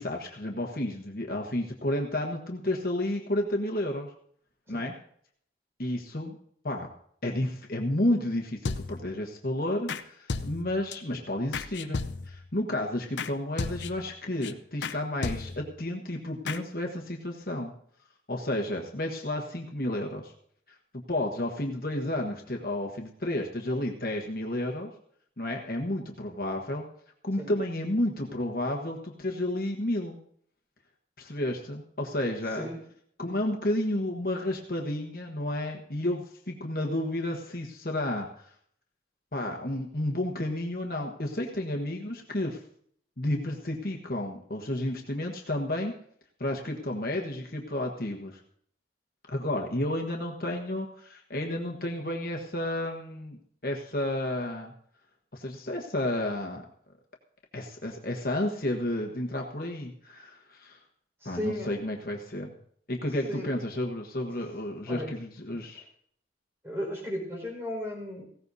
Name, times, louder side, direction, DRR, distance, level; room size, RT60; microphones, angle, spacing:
voice 1, 0.0-4.1 4.7-4.9 5.8-6.3 6.6-6.9 7.2-17.7 18.3-20.3 21.1-24.9 25.4-26.8 27.2-30.2 31.2-32.7 33.2-38.5 39.3-42.6 43.2-45.9 46.4-48.4 49.3-54.7 55.3-56.6 57.5-60.8 61.2-62.5 62.9-65.8, left 1 dB, 50° left, 1 dB, 1.3 m, -31 dB
sound 1, 8.6-9.2 9.9-10.0 10.3-10.9 11.5-12.5 13.2-13.3 13.6-14.1 14.4-14.5 14.8-15.0 15.2-15.8 16.5-16.6, left 4 dB, 80° left, 0.7 m, -34 dB
voice 2, 61.2-61.7 63.3-63.5 64.9-65.1 66.6-68.2, left 1 dB, 15° right, -2 dB, 5.0 m, -35 dB
18.5 x 16.0 x 2.7 m, 0.63 s
head